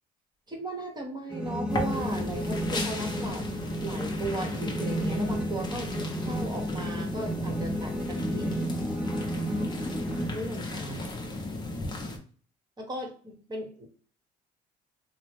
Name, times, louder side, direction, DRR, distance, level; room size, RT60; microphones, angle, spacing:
voice 1, 0.5-3.5 3.8-5.9 6.2-8.5 10.3-11.0 12.8-13.9, right 1 dB, 25° right, 1 dB, 1.0 m, -37 dB
sound 1, 1.3-10.3, right 1 dB, 5° right, 0.6 m, -32 dB
sound 2, 1.7-12.2, left 2 dB, 25° left, 0.7 m, -35 dB
2.8 x 2.0 x 3.2 m, 0.43 s
cardioid pair, 110°, 17 cm